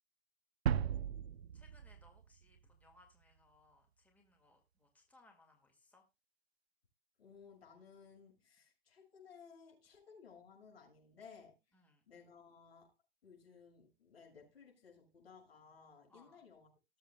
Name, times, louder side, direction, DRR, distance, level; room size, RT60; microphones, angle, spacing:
sound 1, 0.7-2.7, right 9 dB, 85° right, 0.6 m, -37 dB
voice 1, 1.5-6.0 11.7-12.0 16.1-16.4, left 2 dB, 5° left, 2.0 m, -67 dB
voice 2, 7.2-11.6 12.1-12.9 13.2-16.7, left 6 dB, 75° left, 6.5 m, -59 dB
19.0 x 7.6 x 2.2 m
hypercardioid pair, 125°, 30 cm